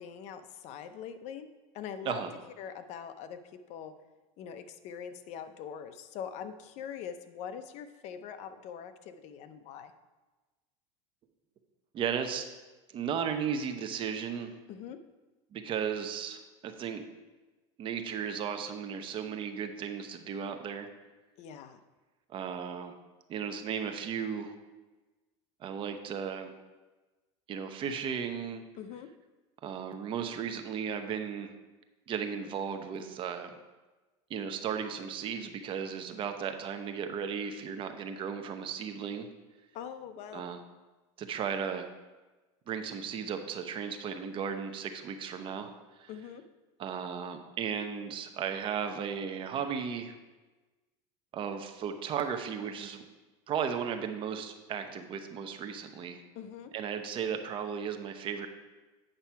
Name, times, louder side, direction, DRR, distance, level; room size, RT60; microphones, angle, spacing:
voice 1, 0.0-1.5 1.7-2.3 2.6-3.9 4.4-9.9 14.7-15.0 21.4-21.8 28.8-29.1 39.7-40.4 46.1-46.4 56.3-56.7, left 8 dB, 45° left, 10 dB, 0.7 m, -43 dB
voice 2, 11.9-12.4 12.9-14.5 15.5-17.0 17.8-20.9 22.3-22.9 23.3-24.5 25.6-26.5 27.5-28.6 29.6-31.5 32.1-33.6 34.3-39.3 40.3-40.6 41.2-41.9 42.7-45.7 46.0-46.1 46.8-50.1 51.3-53.0 53.5-56.2 56.7-58.5, right 7 dB, 35° right, 7 dB, 0.8 m, -35 dB
8.9 x 5.6 x 4.6 m, 1.2 s
supercardioid pair, 135°, 16 cm